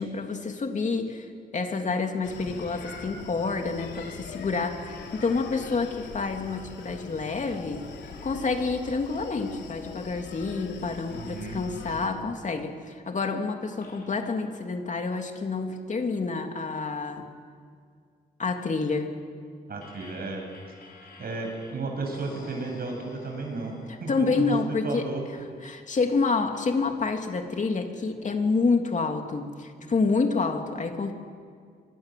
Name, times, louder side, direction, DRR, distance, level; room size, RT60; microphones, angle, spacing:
voice 1, 0.0-7.9 8.2-17.3 18.4-19.1 24.1-25.0 25.6-31.1, left 4 dB, 45° left, 4 dB, 2.9 m, -28 dB
Screaming, 2.2-12.1, left 5 dB, 85° left, 3.5 m, -43 dB
sound 1, 6.4-9.9 10.2-10.3 13.8-16.9 19.8-24.1, left 4 dB, 60° left, 6.0 m, -54 dB
voice 2, 11.1-11.6 19.7-20.4 21.0-23.7 24.0-24.5 24.8-25.2, right 3 dB, 60° right, 2 dB, 7.4 m, -33 dB
24.5 x 23.5 x 7.7 m, 2.2 s
cardioid pair, 85°, 18 cm